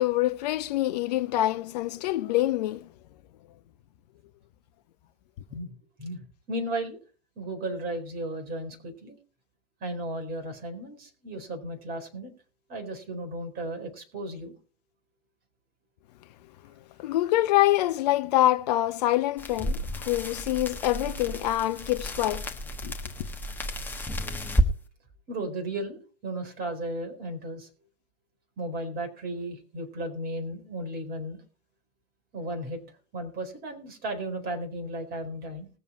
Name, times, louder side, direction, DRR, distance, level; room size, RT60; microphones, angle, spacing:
voice 1, 0.0-2.9 17.0-22.5 22.8-23.0, left 15 dB, 35° left, 0.7 m, -25 dB
voice 2, 5.5-7.0 7.4-9.2 9.8-12.3 12.7-14.6 25.3-27.7 28.6-31.4 32.3-32.8 33.1-35.7, right 1 dB, 25° right, 4.3 m, -35 dB
sound 1, 19.4-24.7, right 1 dB, 5° left, 1.2 m, -31 dB
20.5 x 7.1 x 4.4 m
figure-of-eight pair, 105°, 36 cm